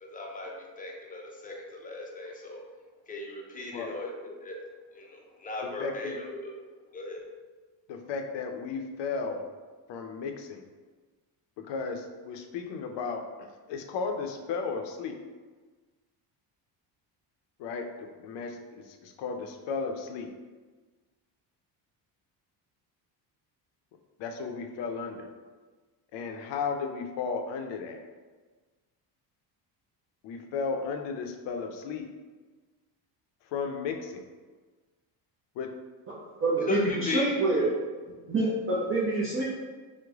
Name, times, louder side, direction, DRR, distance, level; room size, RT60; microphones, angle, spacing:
voice 1, 0.0-2.6 3.1-4.6 4.9-6.5 6.9-7.2 36.3-37.3, left 2 dB, 20° left, -1 dB, 0.5 m, -36 dB
voice 2, 5.8-6.2 7.9-9.4 9.9-10.6 11.6-15.2 17.6-20.3 24.2-25.3 26.1-28.0 30.2-32.1 33.5-34.2 35.6-35.7, left 5 dB, 70° left, 5 dB, 0.6 m, -34 dB
voice 3, 36.4-37.7 38.3-39.4, right 2 dB, 30° right, -7 dB, 0.6 m, -26 dB
3.1 x 2.1 x 3.5 m, 1.4 s
cardioid pair, 120°, 45 cm